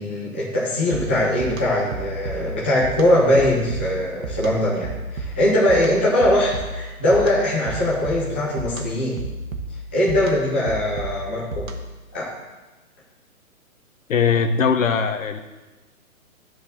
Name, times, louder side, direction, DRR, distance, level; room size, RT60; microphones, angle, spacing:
voice 1, 0.0-9.2 9.9-11.7 12.1-12.3, left 1 dB, 10° left, -8 dB, 0.5 m, -21 dB
sound 1, 0.9-12.0, right 1 dB, 65° right, 1.5 m, -33 dB
voice 2, 14.1-15.4, left 6 dB, 65° left, 7 dB, 1.1 m, -20 dB
9.9 x 4.7 x 7.4 m, 1.1 s
hypercardioid pair, 165°, 43 cm